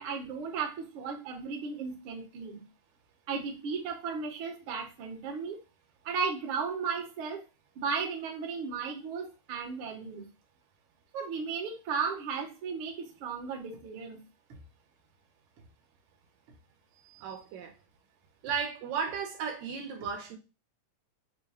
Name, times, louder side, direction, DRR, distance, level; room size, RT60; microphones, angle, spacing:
voice 1, 0.0-2.6 3.3-5.6 6.0-7.4 7.7-10.3 11.1-14.2, right 5 dB, 60° right, 1.5 m, -35 dB
voice 2, 17.0-17.7 18.4-20.4, right 6 dB, 80° right, 2.0 m, -35 dB
5.3 x 2.2 x 3.4 m
omnidirectional pair, 3.4 m